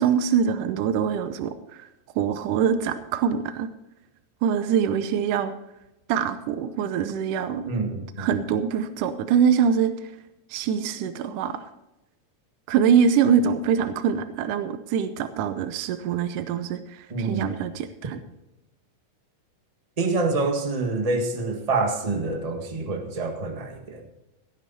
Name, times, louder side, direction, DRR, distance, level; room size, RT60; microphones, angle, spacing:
voice 1, 0.0-1.9 2.2-3.7 4.4-5.5 6.1-7.7 8.2-9.9 10.5-11.6 12.7-18.2, right 7 dB, 80° right, 10 dB, 2.3 m, -24 dB
voice 2, 7.7-8.3 17.1-17.6 20.0-24.1, right 3 dB, 25° right, 4 dB, 0.8 m, -26 dB
16.5 x 9.6 x 4.2 m, 0.95 s
omnidirectional pair, 3.6 m